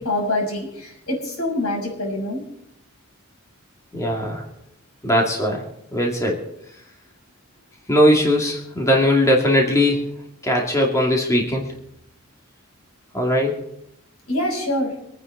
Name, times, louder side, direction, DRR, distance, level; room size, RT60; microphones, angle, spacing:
voice 1, 0.0-2.4 14.3-14.9, left 1 dB, 85° left, 0 dB, 6.6 m, -25 dB
voice 2, 3.9-4.4 5.0-5.6 5.9-6.4 7.9-10.1 10.4-11.8 13.1-13.6, equal, 15° left, -1 dB, 2.4 m, -19 dB
25.5 x 9.7 x 4.0 m, 0.79 s
head